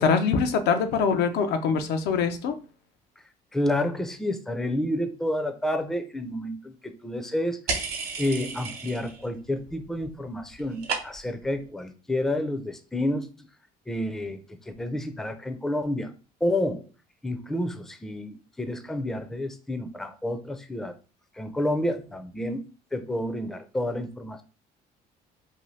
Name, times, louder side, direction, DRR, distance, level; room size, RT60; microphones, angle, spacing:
voice 1, 0.0-2.5, left 5 dB, 85° left, 7 dB, 0.5 m, -23 dB
voice 2, 3.5-7.6 8.2-13.3 13.9-14.4 14.7-16.1 16.4-16.8 17.2-20.9 21.4-22.6 22.9-24.4, left 1 dB, ahead, 8 dB, 0.4 m, -29 dB
sound 1, 7.7-9.3 9.6-10.1 10.4-11.4, right 4 dB, 65° right, 0.9 m, -33 dB
2.6 x 2.3 x 3.1 m, 0.36 s
cardioid pair, 110°, 17 cm